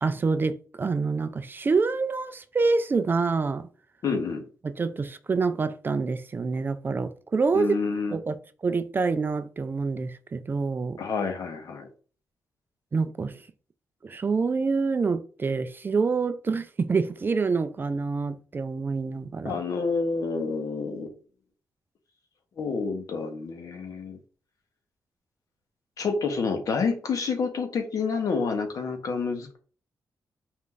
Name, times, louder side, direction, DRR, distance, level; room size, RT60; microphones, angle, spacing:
voice 1, 0.0-3.7 4.6-7.8 8.1-8.4 8.6-11.0 12.9-13.4 14.0-19.6, right 4 dB, 35° right, 0.4 m, -26 dB
voice 2, 4.0-4.4 7.5-8.2 11.0-11.9 19.4-21.1 22.6-24.2 26.0-29.6, left 4 dB, 65° left, 0.9 m, -28 dB
4.5 x 2.5 x 3.7 m
cardioid pair, 95°, 6 cm